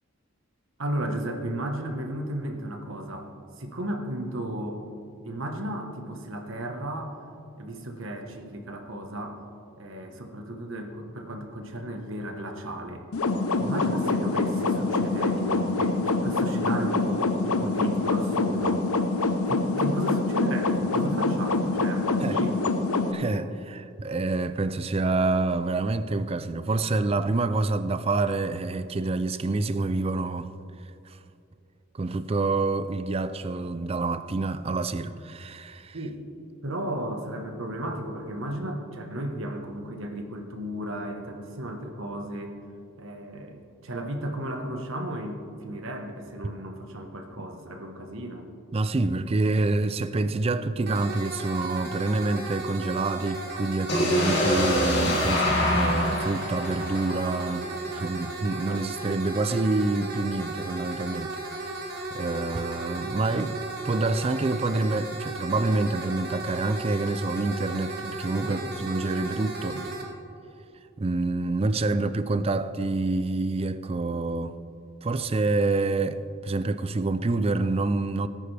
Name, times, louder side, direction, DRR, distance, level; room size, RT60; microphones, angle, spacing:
voice 1, 0.8-4.8 5.2-7.2 7.6-9.4 9.8-13.0 13.6-18.8 19.5-22.7 35.9-36.2 36.6-42.6 43.0-48.5 68.4-68.7 69.7-69.9, right 1 dB, 65° right, 1.3 m, -34 dB
sound 1, 13.1-23.1, left 3 dB, 90° left, 0.8 m, -25 dB
voice 2, 23.1-30.5 31.1-31.2 31.9-36.0 48.7-61.4 62.1-69.8 71.0-74.6 75.0-78.3, right 3 dB, 25° right, 0.4 m, -27 dB
sound 2, 50.9-70.0, right 2 dB, 50° right, 1.7 m, -35 dB
sound 3, 53.9-57.8, left 1 dB, 55° left, 2.5 m, -25 dB
18.0 x 9.8 x 3.4 m
head